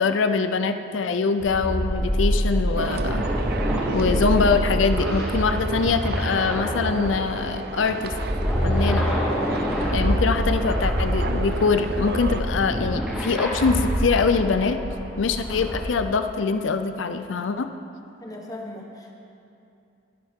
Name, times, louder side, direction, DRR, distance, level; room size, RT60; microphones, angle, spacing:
voice 1, 0.0-3.3 3.9-8.1 8.6-9.1 9.9-14.8 15.2-17.7, left 4 dB, 80° left, 8 dB, 0.5 m, -23 dB
sound 1, 1.4-15.8, equal, 5° right, 3.7 m, -26 dB
sound 2, 2.8-12.4, right 3 dB, 55° right, 0.5 m, -33 dB
voice 2, 18.2-19.1, left 1 dB, 20° left, 0 dB, 1.1 m, -38 dB
20.0 x 10.5 x 3.6 m, 2.7 s
head